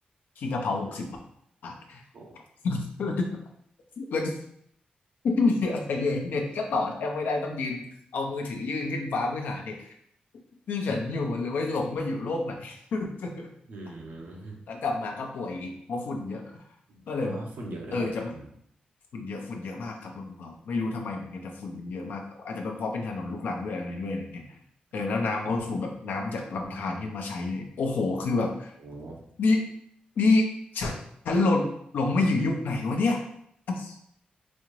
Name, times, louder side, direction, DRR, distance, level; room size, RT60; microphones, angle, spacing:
voice 1, 0.4-1.1 1.6-2.0 2.6-3.3 4.0-4.4 5.2-7.9 8.1-9.9 10.7-13.5 14.7-16.6 17.1-17.4 17.9-18.3 19.1-24.4 24.9-28.7 29.4-29.6 30.2-30.5 30.7-30.9 31.2-33.2 33.7-34.0, left 3 dB, 85° left, 2 dB, 0.7 m, -28 dB
voice 2, 13.7-14.7 16.9-18.6 25.4-25.6 28.8-29.2, right 2 dB, 80° right, -1 dB, 0.9 m, -41 dB
4.2 x 2.5 x 3.1 m, 0.71 s
cardioid pair, 65°, 3 cm